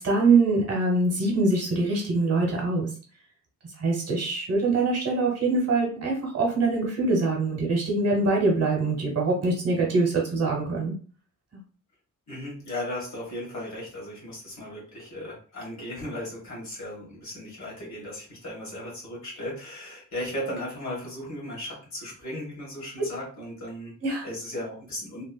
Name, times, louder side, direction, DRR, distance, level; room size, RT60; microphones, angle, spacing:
voice 1, 0.0-2.9 3.8-10.9 11.5-11.6 24.0-24.3, right 3 dB, 45° right, -1 dB, 0.9 m, -24 dB
voice 2, 12.3-23.9 24.2-25.2, left 1 dB, 55° left, -3 dB, 1.3 m, -36 dB
2.9 x 2.4 x 2.2 m, 0.40 s
wide cardioid pair, 175°, 34 cm